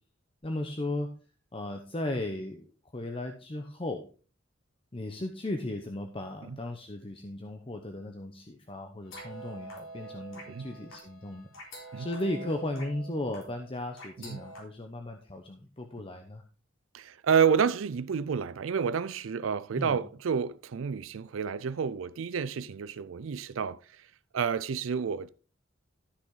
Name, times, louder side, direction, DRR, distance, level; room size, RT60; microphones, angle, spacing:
voice 1, 0.4-1.1 1.5-2.7 2.9-4.0 4.9-11.5 12.0-16.4 19.8-20.0, left 1 dB, 30° left, 0.9 m, -36 dB
sound 1, 9.0-14.6, right 2 dB, 85° left, 4.0 m, -46 dB
voice 2, 16.9-23.8 24.3-25.3, right 6 dB, 80° right, 0.4 m, -29 dB
13.0 x 6.1 x 3.8 m
head